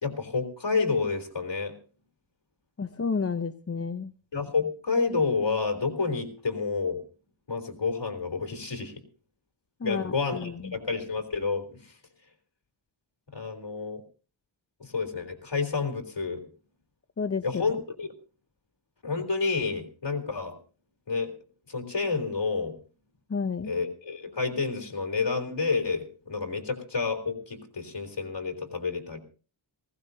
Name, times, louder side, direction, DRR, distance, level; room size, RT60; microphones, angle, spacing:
voice 1, 0.0-1.7 4.3-7.0 7.5-8.9 9.8-11.9 13.3-14.0 14.8-16.4 17.4-18.1 19.0-20.6 21.1-21.3 21.7-22.8 23.7-29.2, left 4 dB, 65° left, 5 dB, 3.5 m, -29 dB
voice 2, 2.8-4.1 9.8-10.7 17.2-17.7 23.3-23.7, left 5 dB, 30° left, 9 dB, 0.7 m, -31 dB
19.0 x 17.5 x 2.7 m, 0.37 s
wide cardioid pair, 75°, 45 cm